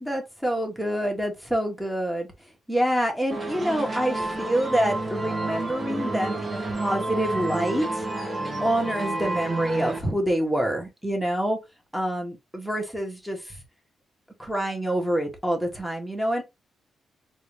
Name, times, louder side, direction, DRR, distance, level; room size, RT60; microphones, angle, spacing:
voice 1, 0.0-2.3 2.7-8.0 8.6-11.6 11.9-13.5 14.4-16.4, right 1 dB, ahead, 1.4 m, -26 dB
sound 1, 3.3-10.0, right 2 dB, 20° right, 1.1 m, -30 dB
3.9 x 2.5 x 3.3 m
cardioid pair, 130°, 0 cm